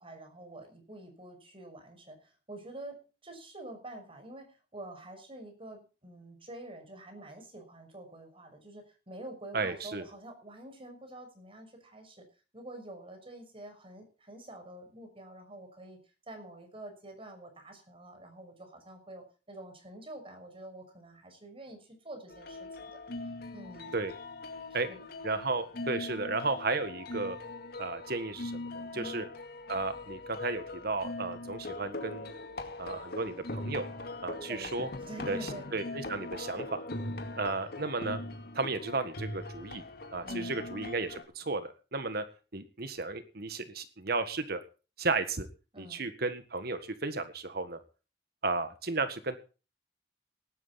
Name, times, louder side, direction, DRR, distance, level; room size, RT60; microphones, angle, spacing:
voice 1, 0.0-3.0 3.2-12.3 12.5-24.0 24.7-25.0 28.9-29.3 34.5-35.7 40.2-40.7 45.7-46.1, right 1 dB, 30° right, 5 dB, 6.2 m, -47 dB
voice 2, 9.5-10.0 23.9-24.1 24.7-24.9 25.2-27.4 27.8-29.2 29.7-32.3 32.8-33.9 34.2-34.9 35.3-35.4 35.7-36.8 37.4-38.2 38.5-39.8 40.1-42.2 42.5-44.6 45.0-45.5 45.8-47.8 48.4-49.4, right 3 dB, 60° right, 10 dB, 1.7 m, -34 dB
sound 1, 22.3-41.2, left 2 dB, 60° left, 2.2 m, -41 dB
18.0 x 11.5 x 4.2 m, 0.34 s
head